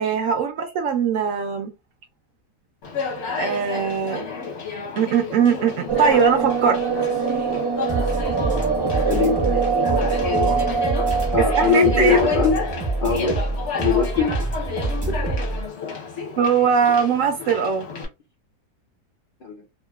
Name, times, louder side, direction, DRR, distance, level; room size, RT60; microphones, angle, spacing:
voice 1, 0.0-1.7 3.3-4.2 5.0-6.8 11.5-12.2 16.4-17.9, right 6 dB, 70° right, 0.8 m, -21 dB
Conversation, 2.8-18.0, left 5 dB, 50° left, 1.1 m, -31 dB
sound 1, 5.9-13.5, right 6 dB, 45° right, 0.3 m, -24 dB
sound 2, 7.9-15.6, right 2 dB, 5° right, 0.6 m, -26 dB
voice 2, 9.0-9.4 11.3-12.6 13.0-13.5 13.8-14.7 15.1-15.4 19.4-19.6, left 5 dB, 70° left, 0.5 m, -22 dB
2.9 x 2.3 x 2.3 m
omnidirectional pair, 1.7 m